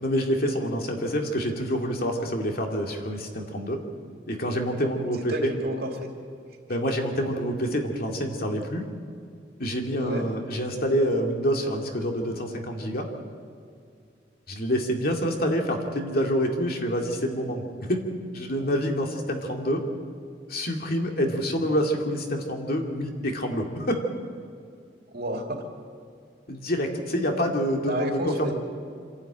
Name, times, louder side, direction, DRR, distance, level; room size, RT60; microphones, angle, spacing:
voice 1, 0.0-3.8 4.3-5.5 6.7-8.8 9.6-13.1 14.5-18.0 18.3-19.8 20.5-24.0 26.5-28.5, equal, 55° left, 2 dB, 2.4 m, -27 dB
voice 2, 5.3-6.1 10.0-10.2 18.6-18.7 25.1-25.6 27.9-28.5, right 1 dB, 55° right, 2 dB, 2.6 m, -30 dB
26.5 x 11.5 x 9.0 m, 2.4 s
head